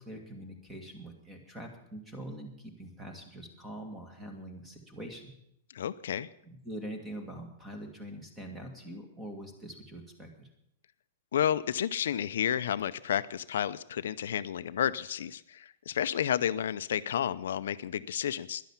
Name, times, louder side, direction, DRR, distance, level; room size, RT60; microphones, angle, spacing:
voice 1, 0.0-5.3 6.4-10.5, right 1 dB, 10° right, 4 dB, 1.9 m, -44 dB
voice 2, 5.7-6.3 11.3-18.6, left 9 dB, 75° left, 14 dB, 0.5 m, -31 dB
11.5 x 11.0 x 7.2 m, 0.77 s
supercardioid pair, 170°, 0 cm